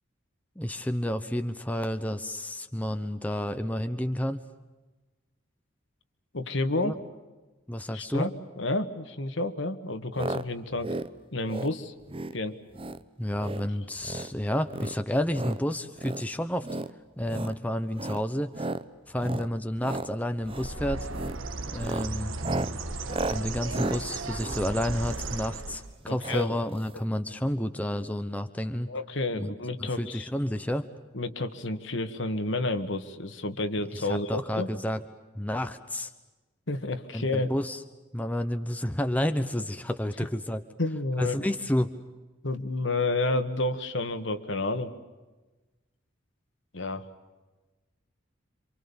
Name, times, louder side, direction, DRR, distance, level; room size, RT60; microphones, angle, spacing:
voice 1, 0.6-4.4 6.8-6.9 7.7-8.3 13.2-16.7 17.2-18.7 19.1-21.1 21.7-22.3 23.3-28.9 29.3-29.5 29.8-30.9 33.9-35.0 35.4-36.1 37.1-37.8 38.1-40.6 41.2-41.9, left 1 dB, 10° left, 7 dB, 1.0 m, -30 dB
voice 2, 6.3-7.0 7.9-11.0 11.3-11.9 12.3-12.6 26.1-26.6 28.9-30.3 31.1-34.7 36.7-37.5 40.8-41.4 42.4-44.9 46.7-47.1, left 2 dB, 65° left, 9 dB, 1.8 m, -30 dB
sound 1, 10.1-10.4 10.7-11.1 11.4-11.7 12.1-12.4 12.7-13.0 13.3-13.7 14.0-14.3 14.7-15.6 16.0-16.2 16.6-16.9 17.2-17.6 17.9-18.2 18.5-18.8 19.2-19.5 19.8-20.1 20.4-20.7 21.1-21.4 21.7-25.4 26.2-26.5 26.7-26.8 27.0-27.1, right 2 dB, 25° right, 0.8 m, -34 dB
Bird, 20.4-26.0, right 3 dB, 85° right, 1.6 m, -35 dB
27.5 x 26.0 x 7.2 m, 1.2 s
head